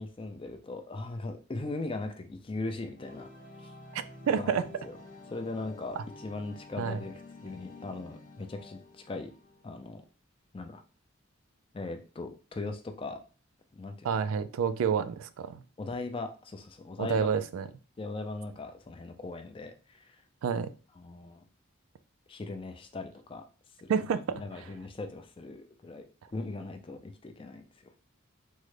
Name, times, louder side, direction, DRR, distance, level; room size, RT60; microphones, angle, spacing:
voice 1, 0.0-3.3 3.6-3.7 4.3-4.9 5.3-9.3 9.6-10.0 10.5-10.8 11.7-13.2 13.7-14.1 15.8-17.3 18.0-20.2 21.0-21.4 22.3-23.4 23.8-24.0 24.3-26.0 26.3-27.9, left 2 dB, 25° left, 0.4 m, -39 dB
sound 1, 2.9-9.8, left 2 dB, 40° left, 0.7 m, -50 dB
voice 2, 3.9-4.6 6.8-7.0 14.0-15.6 17.0-17.7 20.4-20.7 23.9-24.4, right 6 dB, 80° right, 0.3 m, -29 dB
3.6 x 2.1 x 3.1 m
head